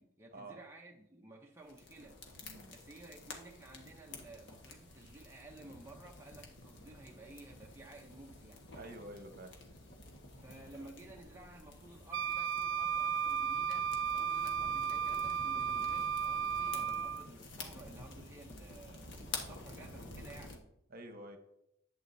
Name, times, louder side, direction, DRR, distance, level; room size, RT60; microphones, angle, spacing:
voice 1, 0.0-2.2 2.7-8.7 10.4-20.6, right 2 dB, 15° right, 0.7 m, -54 dB
sound 1, 1.6-20.6, left 3 dB, 65° left, 1.4 m, -50 dB
voice 2, 2.4-2.7 8.7-9.5 20.9-21.4, right 1 dB, 50° right, 1.0 m, -49 dB
Wind instrument woodwind instrument, 12.1-17.3, right 7 dB, 70° right, 0.3 m, -34 dB
11.5 x 8.3 x 2.7 m
head